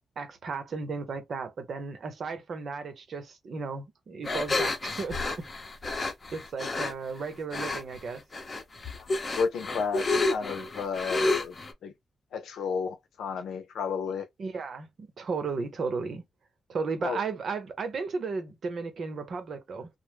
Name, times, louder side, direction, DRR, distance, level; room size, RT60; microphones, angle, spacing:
voice 1, 0.2-5.5 6.3-8.2 14.4-16.2 16.7-19.9, right 4 dB, 65° right, 0.8 m, -34 dB
sound 1, 4.2-6.9 7.5-8.0 8.3-11.7, left 2 dB, 40° left, 0.7 m, -30 dB
voice 2, 9.4-11.6 11.8-11.9 12.3-14.3 17.0-17.2, left 5 dB, 85° left, 0.6 m, -32 dB
2.1 x 2.1 x 3.2 m
cardioid pair, 55°, 0 cm